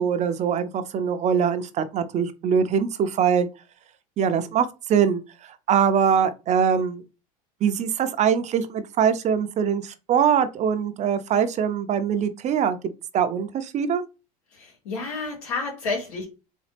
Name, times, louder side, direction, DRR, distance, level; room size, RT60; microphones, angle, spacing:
voice 1, 0.0-3.5 4.2-7.0 7.6-12.8 13.1-14.0, right 7 dB, 40° right, 0.6 m, -23 dB
voice 2, 14.5-16.2, left 3 dB, 85° left, 2.8 m, -30 dB
4.1 x 3.4 x 3.3 m
supercardioid pair, 100°, 19 cm